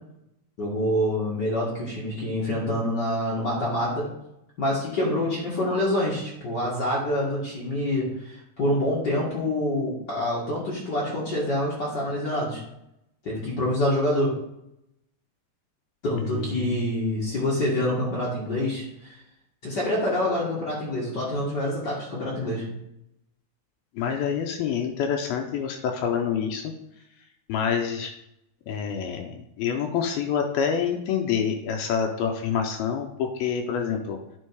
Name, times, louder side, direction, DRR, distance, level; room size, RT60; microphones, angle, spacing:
voice 1, 0.6-4.1 4.6-12.6 13.2-14.3 16.0-19.2 19.6-22.8, left 1 dB, 60° left, -6 dB, 1.1 m, -26 dB
voice 2, 16.1-16.8 24.0-26.7 27.5-28.1 28.7-34.2, left 7 dB, 80° left, 4 dB, 2.2 m, -27 dB
9.9 x 4.4 x 4.7 m, 0.83 s
omnidirectional pair, 4.9 m